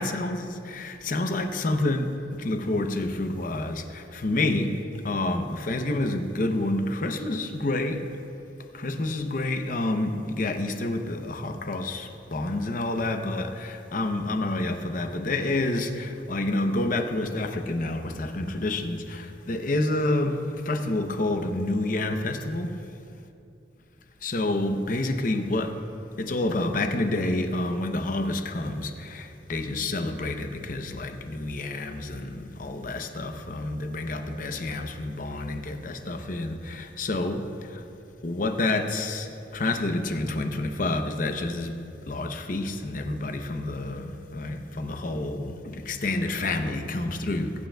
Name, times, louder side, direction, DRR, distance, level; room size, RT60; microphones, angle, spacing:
voice 1, 0.0-2.1 2.4-4.7 5.0-8.0 8.7-22.7 24.2-25.8 26.2-37.5 38.2-39.3 39.5-41.8 42.1-47.5, left 2 dB, 50° left, 0.7 m, -28 dB
23.0 x 8.9 x 2.3 m
head